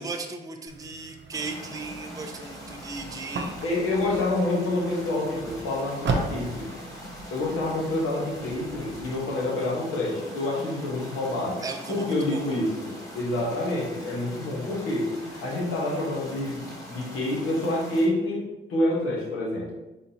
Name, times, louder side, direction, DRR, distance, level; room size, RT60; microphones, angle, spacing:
voice 1, 0.0-3.5 11.6-12.4, right 4 dB, 15° right, 4 dB, 0.5 m, -36 dB
sound 1, 0.7-9.2, right 3 dB, 60° right, 0.6 m, -37 dB
sound 2, 1.3-18.1, left 1 dB, 15° left, 1.2 m, -42 dB
voice 2, 3.6-6.7 7.3-11.6 11.9-19.7, left 1 dB, 80° left, -3 dB, 1.2 m, -27 dB
4.0 x 3.5 x 2.8 m, 1.0 s
cardioid pair, 75°, 21 cm